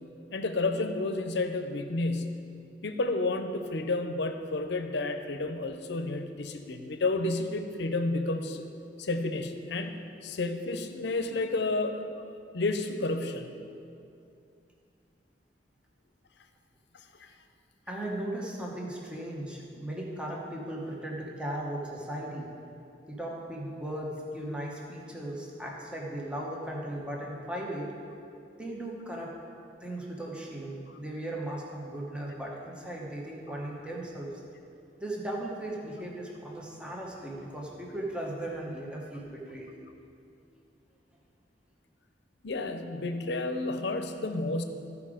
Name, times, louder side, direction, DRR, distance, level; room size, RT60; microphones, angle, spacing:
voice 1, 0.3-2.5 2.8-8.6 9.0-13.6 17.2-17.3 42.4-44.6, left 2 dB, 70° left, 7 dB, 0.7 m, -31 dB
voice 2, 17.9-22.5 23.1-28.0 28.6-29.4 29.8-34.3 35.0-39.8, right 1 dB, 5° right, -2 dB, 1.0 m, -37 dB
13.5 x 4.9 x 5.0 m, 2.6 s
head